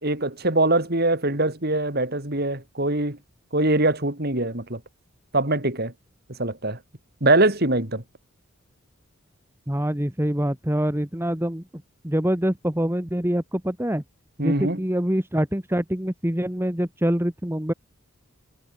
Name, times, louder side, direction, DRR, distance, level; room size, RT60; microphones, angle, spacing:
voice 1, 0.0-3.2 3.5-4.8 5.3-5.9 6.3-6.8 7.2-8.0 14.4-14.8, right 2 dB, 45° right, 3.9 m, -23 dB
voice 2, 9.7-14.0 14.4-17.7, equal, 10° right, 1.6 m, -25 dB
head